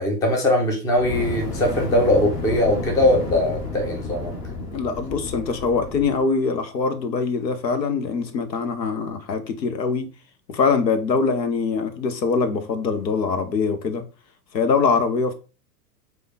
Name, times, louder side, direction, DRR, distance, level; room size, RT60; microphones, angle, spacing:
voice 1, 0.0-4.3, left 1 dB, 5° left, 0.4 m, -21 dB
Fire, 0.9-6.2, left 3 dB, 45° left, 1.8 m, -31 dB
voice 2, 4.7-10.1 10.5-14.0 14.5-15.3, left 4 dB, 80° left, 0.9 m, -23 dB
5.0 x 2.4 x 3.9 m
hypercardioid pair, 110°, 50 cm